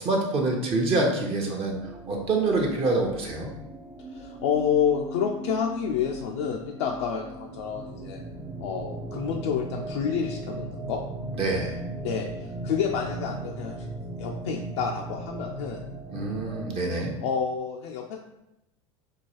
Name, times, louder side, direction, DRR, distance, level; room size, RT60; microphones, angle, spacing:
voice 1, 0.0-1.8 2.1-3.5 11.3-11.8 16.1-17.1, right 2 dB, 40° right, 0 dB, 0.8 m, -26 dB
sound 1, 1.7-16.7, right 2 dB, 15° right, 0.4 m, -38 dB
voice 2, 4.1-8.2 8.6-11.0 12.0-13.9 14.2-15.8 17.2-18.2, left 7 dB, 70° left, 0 dB, 0.4 m, -29 dB
4.6 x 2.3 x 3.0 m, 0.88 s
hypercardioid pair, 90°, 15 cm